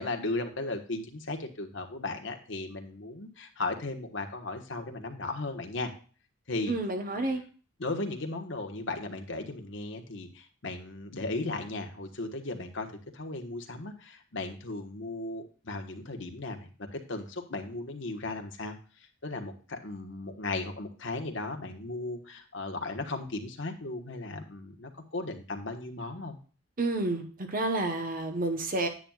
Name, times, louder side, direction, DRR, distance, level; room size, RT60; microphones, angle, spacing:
voice 1, 0.0-5.9 6.5-6.7 7.1-7.4 7.8-12.9 13.1-26.4, left 2 dB, 60° left, 5 dB, 1.4 m, -36 dB
voice 2, 6.7-7.4 26.8-28.9, right 2 dB, 40° right, 6 dB, 1.1 m, -30 dB
10.0 x 8.9 x 2.4 m, 0.39 s
head